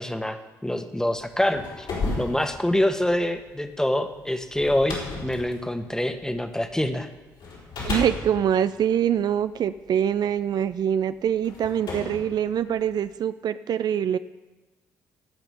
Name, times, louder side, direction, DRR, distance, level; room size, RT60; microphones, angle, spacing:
voice 1, 0.0-1.9 2.2-7.1 11.9-12.1, left 1 dB, 5° left, 8 dB, 1.4 m, -26 dB
sound 1, 1.2-6.8 7.4-9.9 10.7-10.8 11.4-13.1, left 3 dB, 70° left, 4.4 m, -34 dB
voice 2, 7.8-14.2, right 9 dB, 55° right, 13 dB, 0.4 m, -24 dB
17.0 x 5.9 x 7.1 m, 1.2 s
hypercardioid pair, 45°, 8 cm